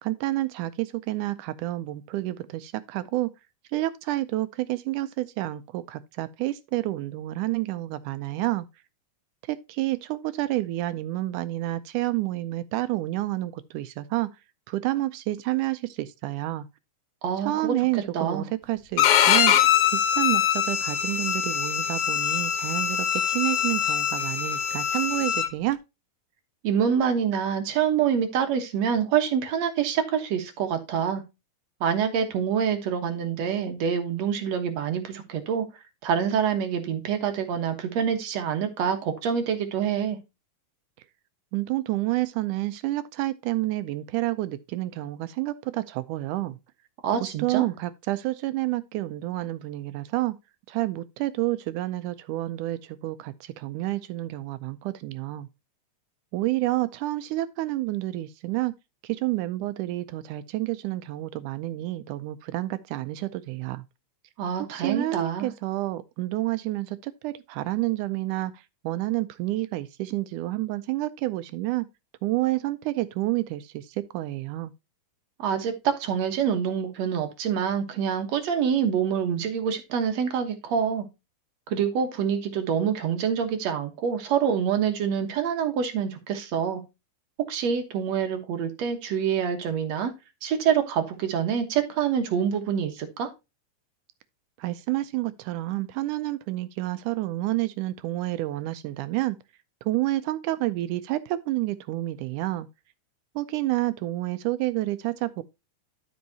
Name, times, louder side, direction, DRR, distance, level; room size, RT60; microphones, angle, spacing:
voice 1, 0.0-3.3 3.7-8.7 9.5-14.3 14.7-16.7 17.4-19.5 19.9-25.8 41.5-46.6 47.4-50.4 50.7-55.5 56.3-58.7 59.0-63.8 64.7-71.9 72.2-74.7 94.6-99.4 99.9-102.7 103.4-105.4, right 17 dB, 80° right, 1.9 m, -29 dB
voice 2, 17.2-18.5 26.6-31.2 31.8-35.7 36.0-40.2 47.0-47.6 64.4-65.5 75.4-81.1 81.7-86.8 87.5-90.1 90.4-93.3, right 7 dB, 60° right, 2.2 m, -26 dB
Bowed string instrument, 19.0-25.5, left 9 dB, 70° left, 2.2 m, -23 dB
12.5 x 5.5 x 2.8 m
omnidirectional pair, 3.9 m